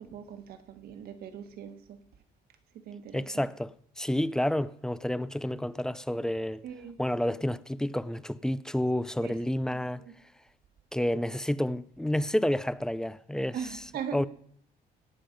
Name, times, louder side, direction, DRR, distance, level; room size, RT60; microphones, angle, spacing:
voice 1, 0.0-2.0 2.9-3.4 6.6-6.9 9.2-9.4 9.7-10.1 13.5-14.2, right 7 dB, 65° right, 1.5 m, -40 dB
voice 2, 3.1-6.6 7.0-10.0 10.9-13.8 14.1-14.2, left 1 dB, 5° left, 0.4 m, -30 dB
17.5 x 7.4 x 5.2 m
cardioid pair, 110°, 17 cm